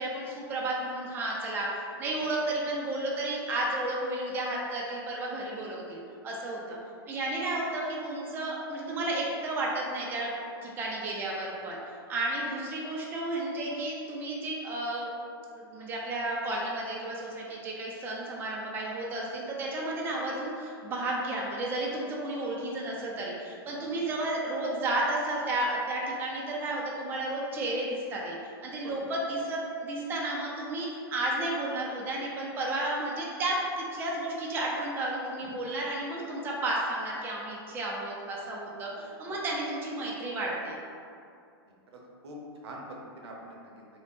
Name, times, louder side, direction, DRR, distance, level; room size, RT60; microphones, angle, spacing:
voice 1, 0.0-6.8 7.1-10.3 10.6-15.1 15.6-40.8, right 1 dB, 15° right, -3 dB, 0.3 m, -32 dB
voice 2, 42.6-43.8, right 1 dB, 85° right, -1 dB, 0.6 m, -45 dB
2.4 x 2.0 x 3.3 m, 2.4 s
hypercardioid pair, 140°, 13 cm